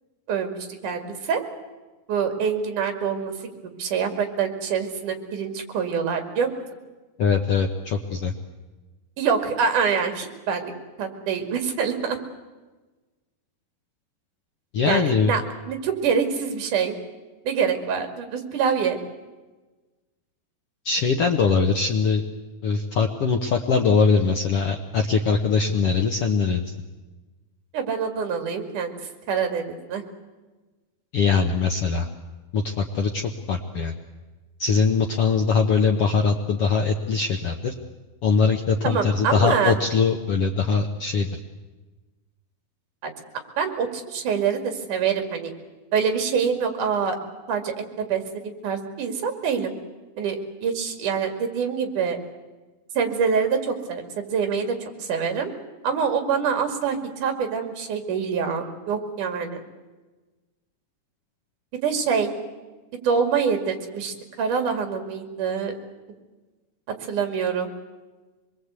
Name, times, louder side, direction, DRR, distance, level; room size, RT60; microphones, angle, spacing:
voice 1, 0.8-1.4 2.1-3.3 3.8-6.5 9.2-10.7 11.0-12.2 14.9-17.0 17.5-19.0 27.7-28.9 29.3-30.0 38.8-39.8 43.0-43.1 43.6-45.5 45.9-47.2 47.5-49.7 50.2-52.2 53.0-54.0 54.3-55.5 55.8-59.6 61.8-62.3 63.0-65.7 67.1-67.7, right 6 dB, 60° right, 6 dB, 3.6 m, -25 dB
voice 2, 7.2-8.3 14.7-15.3 20.8-22.2 22.6-26.7 31.1-32.1 32.5-33.9 34.6-37.7 38.2-41.4, left 5 dB, 75° left, 4 dB, 1.3 m, -22 dB
25.0 x 21.0 x 8.2 m, 1.2 s
omnidirectional pair, 4.3 m